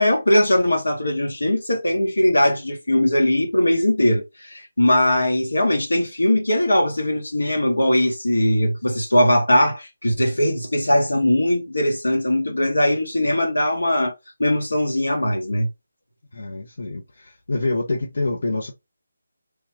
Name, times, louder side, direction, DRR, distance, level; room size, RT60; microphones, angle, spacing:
voice 1, 0.0-14.1 14.4-15.7, left 1 dB, 75° left, 1.2 m, -20 dB
voice 2, 16.3-18.7, left 2 dB, 60° left, 0.8 m, -26 dB
3.2 x 2.3 x 3.4 m
figure-of-eight pair, 155°, 0 cm